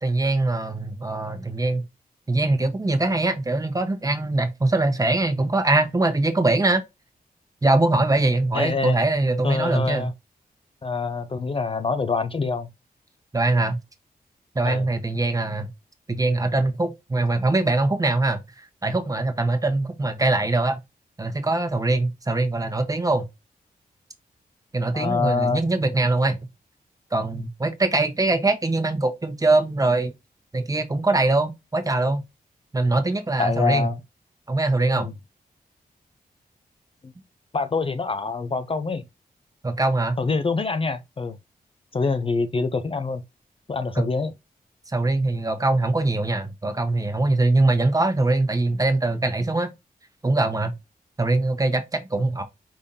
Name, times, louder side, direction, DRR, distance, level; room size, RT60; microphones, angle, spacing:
voice 1, 0.0-1.8 2.3-6.8 7.6-10.1 13.3-13.8 14.5-15.7 16.1-20.8 21.2-23.3 24.7-26.4 27.1-30.1 30.5-32.2 32.7-33.9 34.5-35.1 39.6-40.2 43.9-44.1 44.9-49.7 50.2-50.7 51.2-52.4, right 2 dB, 20° right, 0.9 m, -22 dB
voice 2, 8.5-9.0 9.4-10.1 10.8-12.7 14.7-14.9 24.9-25.6 33.4-34.0 35.0-35.1 37.5-39.0 40.2-41.4 41.9-43.2 43.7-44.3, left 4 dB, 35° left, 0.5 m, -25 dB
5.2 x 3.4 x 2.7 m
wide cardioid pair, 100°, 16 cm